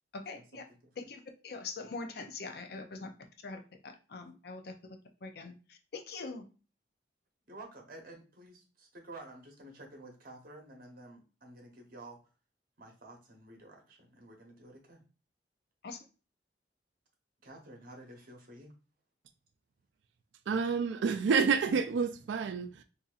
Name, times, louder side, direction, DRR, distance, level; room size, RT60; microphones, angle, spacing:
voice 1, 0.1-0.6 1.0-3.1 3.4-4.7 5.2-6.4 15.8-16.0, left 3 dB, 60° left, 0.5 m, -43 dB
voice 2, 7.5-12.2 12.8-15.0 17.4-18.7, right 2 dB, 55° right, 1.0 m, -51 dB
voice 3, 20.5-22.8, right 5 dB, 85° right, 0.4 m, -29 dB
4.0 x 2.7 x 2.4 m
head